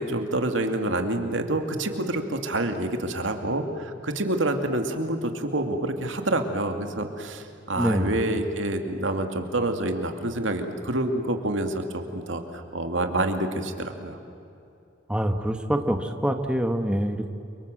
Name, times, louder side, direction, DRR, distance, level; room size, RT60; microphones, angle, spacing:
voice 1, 0.0-14.2, right 1 dB, 75° right, 5 dB, 2.5 m, -27 dB
voice 2, 7.8-8.1 15.1-17.3, equal, 5° right, 5 dB, 1.3 m, -25 dB
30.0 x 24.5 x 7.8 m, 2.8 s
head